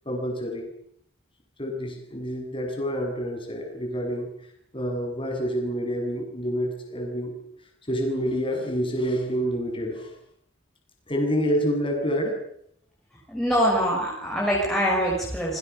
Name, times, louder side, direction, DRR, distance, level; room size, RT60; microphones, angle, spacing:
voice 1, 0.1-0.7 1.6-4.3 4.7-7.4 7.9-10.1 11.1-12.4, equal, 25° left, 3 dB, 7.2 m, -27 dB
voice 2, 13.3-15.6, equal, ahead, -5 dB, 6.7 m, -24 dB
28.0 x 25.0 x 7.0 m, 0.71 s
head